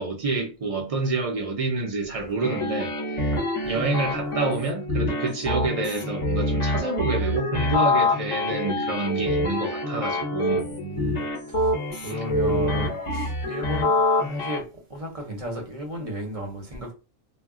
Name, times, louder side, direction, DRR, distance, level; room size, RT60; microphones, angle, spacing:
voice 1, 0.0-2.9 3.2-3.3 3.6-10.7 12.1-12.2, right 3 dB, 65° right, 0.3 m, -28 dB
sound 1, 2.4-14.6, left 2 dB, 35° left, 0.5 m, -26 dB
voice 2, 10.5-16.9, right 1 dB, 35° right, 0.7 m, -34 dB
2.2 x 2.1 x 3.5 m
omnidirectional pair, 1.4 m